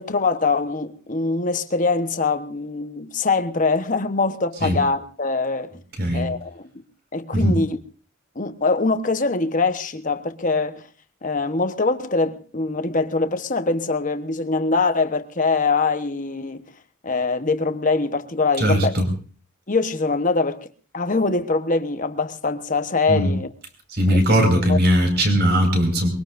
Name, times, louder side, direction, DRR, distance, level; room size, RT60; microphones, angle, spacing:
voice 1, 0.0-5.8 6.1-6.8 7.1-7.8 8.3-10.9 11.2-16.6 17.0-18.9 19.7-20.7 20.9-23.5 24.1-24.2 24.6-24.8, left 3 dB, 40° left, 1.1 m, -23 dB
voice 2, 5.9-6.3 7.3-7.6 18.6-19.1 23.1-23.3 23.9-26.1, equal, 50° right, 5.3 m, -19 dB
23.5 x 22.5 x 2.6 m
head